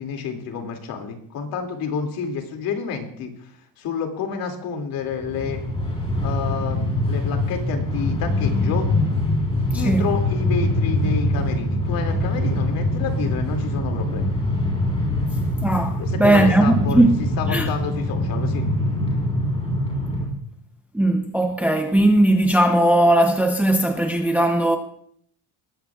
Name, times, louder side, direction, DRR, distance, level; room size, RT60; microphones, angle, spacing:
voice 1, 0.0-3.5 3.8-5.6 6.2-8.9 9.7-14.3 16.0-17.0 17.4-18.7, left 6 dB, 60° left, 2.4 m, -29 dB
Train, 5.1-20.3, left 1 dB, 15° left, 3.7 m, -23 dB
voice 2, 9.7-10.1 15.6-17.1 17.5-17.7 20.9-24.8, right 1 dB, 5° right, 0.6 m, -18 dB
20.0 x 14.5 x 2.4 m
cardioid pair, 175°, 40 cm